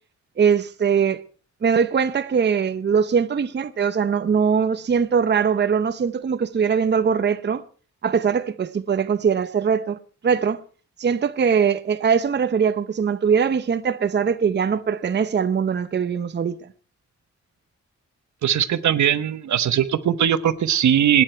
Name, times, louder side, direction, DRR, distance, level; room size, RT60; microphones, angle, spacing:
voice 1, 0.4-1.2 1.6-7.6 8.0-10.0 10.2-10.6 11.0-16.6, right 6 dB, 35° right, 0.8 m, -21 dB
voice 2, 18.4-21.2, right 10 dB, 70° right, 1.1 m, -20 dB
27.5 x 9.9 x 4.5 m
wide cardioid pair, 150°, 30 cm